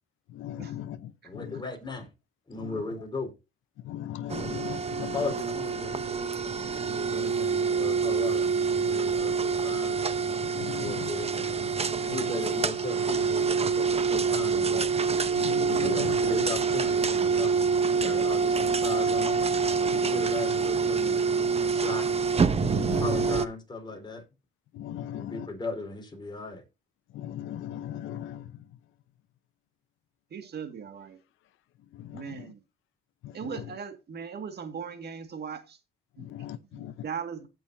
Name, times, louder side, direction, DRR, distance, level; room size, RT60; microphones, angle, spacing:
voice 1, 0.4-1.0 1.3-1.6 3.9-5.1 10.5-11.1 15.3-16.1 19.9-20.0 22.5-23.0 24.8-25.5 27.1-28.4 32.1-32.4 36.2-36.9, left 11 dB, 85° left, 0.8 m, -38 dB
voice 2, 1.2-2.1 2.5-3.3 5.0-10.0 10.7-11.7 12.0-14.9 15.8-19.4 19.6-22.1 23.0-24.2 25.1-26.6, left 3 dB, 20° left, 4.2 m, -37 dB
sound 1, 4.3-23.5, right 5 dB, 30° right, 0.9 m, -26 dB
voice 3, 30.3-31.2 32.1-32.6 33.3-35.8 36.2-36.3 36.7-37.5, right 7 dB, 55° right, 2.1 m, -38 dB
16.0 x 6.2 x 2.7 m
cardioid pair, 90°, 20 cm